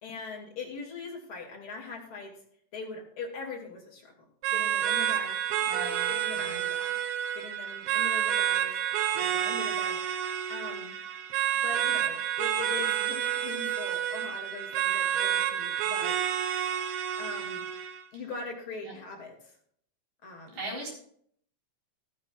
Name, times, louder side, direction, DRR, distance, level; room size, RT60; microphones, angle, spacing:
voice 1, 0.0-2.3 2.7-4.1 4.5-5.4 6.1-6.9 7.3-8.8 9.1-10.0 10.5-11.0 11.6-16.1 17.2-17.6 18.1-19.5 20.2-20.6, left 4 dB, 35° left, -1 dB, 2.4 m, -41 dB
sound 1, 4.4-18.0, right 10 dB, 75° right, 2.4 m, -29 dB
voice 2, 5.7-6.6 18.1-18.2 18.8-19.0 20.5-20.9, right 1 dB, 55° right, -2 dB, 5.8 m, -39 dB
14.5 x 13.5 x 2.4 m, 0.64 s
omnidirectional pair, 5.3 m